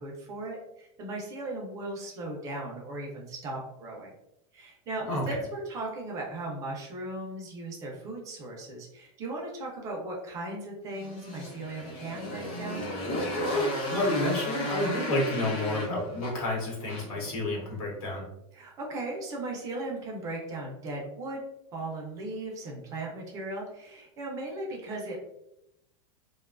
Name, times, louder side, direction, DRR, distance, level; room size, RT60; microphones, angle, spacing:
voice 1, 0.0-4.1 4.5-12.9 18.5-21.4 21.7-25.2, right 2 dB, 20° right, -1 dB, 0.3 m, -37 dB
Motorcycle, 10.9-17.3, left 1 dB, 35° left, 0.7 m, -34 dB
voice 2, 13.5-18.3, left 1 dB, 85° left, -3 dB, 1.0 m, -30 dB
2.4 x 2.2 x 2.3 m, 0.83 s
supercardioid pair, 170°, 18 cm